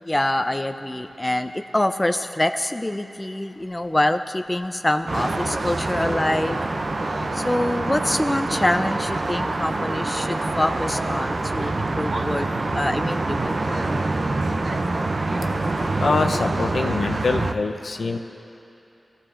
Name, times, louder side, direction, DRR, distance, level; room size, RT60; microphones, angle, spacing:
voice 1, 0.0-6.6 7.3-12.5 12.7-13.8, left 1 dB, 20° left, 8 dB, 0.5 m, -25 dB
sound 1, 5.1-17.5, right 2 dB, 55° right, 0.6 m, -25 dB
voice 2, 16.0-18.2, left 4 dB, 80° left, 5 dB, 0.7 m, -24 dB
22.0 x 14.5 x 2.5 m, 3.0 s
wide cardioid pair, 65°, 0 cm